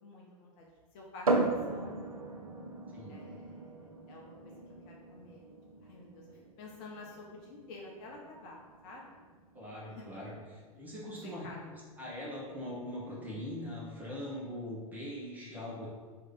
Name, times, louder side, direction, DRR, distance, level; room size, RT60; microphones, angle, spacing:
voice 1, 0.0-2.1 3.1-4.5 4.9-5.4 5.8-9.1 10.0-10.1 11.4-11.6, left 2 dB, 40° left, -2 dB, 0.6 m, -50 dB
sound 1, 1.3-14.8, right 2 dB, 90° right, 0.4 m, -39 dB
voice 2, 2.9-3.2 9.5-11.5 12.0-15.9, left 1 dB, 10° right, -6 dB, 1.1 m, -41 dB
3.1 x 2.8 x 4.0 m, 1.5 s
figure-of-eight pair, 95°, 18 cm